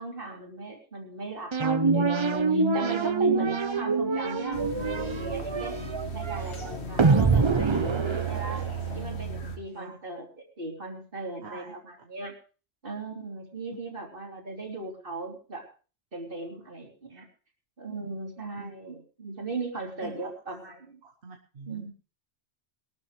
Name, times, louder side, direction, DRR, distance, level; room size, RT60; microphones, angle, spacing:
voice 1, 0.0-5.8 6.1-8.6 8.9-12.3 12.8-15.7 16.1-17.3 17.8-21.0 21.7-21.9, right 2 dB, 55° right, 0 dB, 3.3 m, -38 dB
sound 1, 1.5-9.0, right 4 dB, 30° right, 0.7 m, -25 dB
sound 2, 4.5-9.6, right 5 dB, 80° left, 2.0 m, -35 dB
voice 2, 11.4-11.7 13.7-13.8 18.6-18.7 20.0-20.6 21.0-21.9, right 3 dB, 80° right, 2 dB, 1.4 m, -45 dB
21.5 x 12.5 x 3.2 m, 0.35 s
omnidirectional pair, 1.1 m